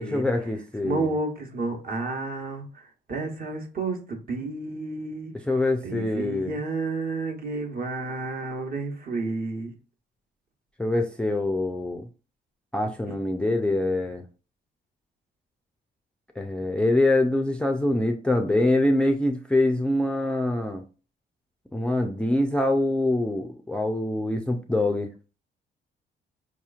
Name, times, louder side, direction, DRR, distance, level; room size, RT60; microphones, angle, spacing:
voice 1, 0.0-1.1 5.5-6.6 10.8-12.1 12.7-14.2 16.4-20.8 21.7-25.1, left 1 dB, 5° left, 0.3 m, -24 dB
voice 2, 0.8-5.3 5.8-9.7, right 3 dB, 45° right, 1.0 m, -31 dB
4.7 x 2.9 x 2.4 m
cardioid pair, 90°, 20 cm